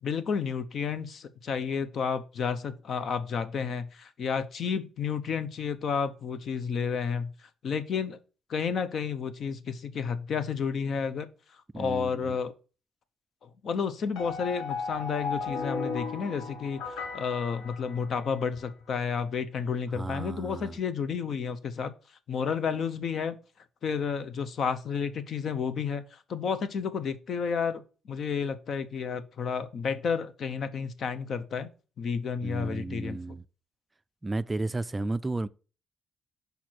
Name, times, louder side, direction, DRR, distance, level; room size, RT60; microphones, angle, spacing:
voice 1, 0.0-7.3 7.6-8.2 8.5-11.3 11.7-12.5 13.4-21.9 22.3-23.4 23.8-31.7 32.0-33.4, left 6 dB, 60° left, 0.8 m, -31 dB
voice 2, 11.7-12.4 19.9-20.7 32.4-33.4 34.2-35.5, right 2 dB, 20° right, 0.3 m, -33 dB
sound 1, 14.1-18.5, left 4 dB, 75° left, 1.6 m, -35 dB
5.3 x 4.5 x 4.4 m
cardioid pair, 90°, 0 cm